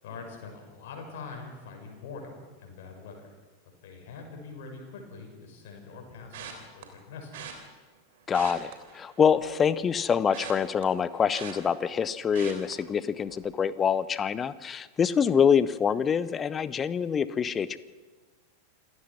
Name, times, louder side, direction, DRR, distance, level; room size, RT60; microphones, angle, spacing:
voice 1, 0.0-3.3 3.8-7.6, left 4 dB, 55° left, 2 dB, 6.4 m, -44 dB
sound 1, 6.3-6.8 7.3-7.5 8.2-9.5 9.8-12.0 12.3-12.7 13.2-13.5 13.8-13.9, right 9 dB, 55° right, 3.5 m, -43 dB
voice 2, 8.3-17.8, left 7 dB, 20° left, 17 dB, 0.9 m, -25 dB
27.5 x 15.5 x 6.2 m, 1.3 s
figure-of-eight pair, 90°, 0 cm